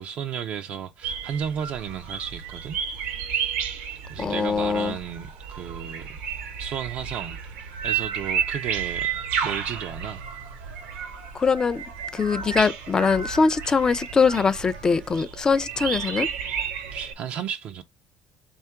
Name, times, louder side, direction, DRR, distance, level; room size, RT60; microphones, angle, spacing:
voice 1, 0.0-2.8 3.1-3.5 4.1-6.2 6.6-7.4 7.8-9.1 9.4-10.2 16.9-17.8, right 8 dB, 55° right, 0.3 m, -33 dB
sound 1, 1.0-17.1, right 7 dB, 90° right, 0.8 m, -32 dB
voice 2, 4.2-4.9 11.3-11.8 12.1-16.3, left 5 dB, 25° left, 0.3 m, -22 dB
3.5 x 2.3 x 4.5 m
cardioid pair, 130°, 3 cm